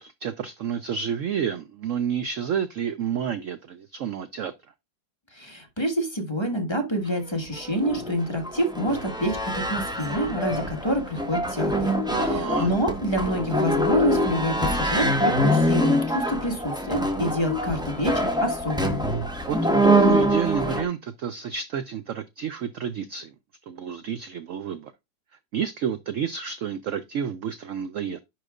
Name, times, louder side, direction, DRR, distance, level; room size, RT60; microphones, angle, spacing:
voice 1, 0.0-4.5 12.1-12.7 19.5-23.3 23.7-24.9 25.5-28.2, right 8 dB, 70° right, 0.7 m, -30 dB
voice 2, 5.3-11.9 12.2-19.0, equal, 15° left, 1.4 m, -27 dB
sound 1, 7.3-20.8, equal, 5° right, 0.8 m, -25 dB
10.5 x 4.9 x 2.4 m
omnidirectional pair, 2.0 m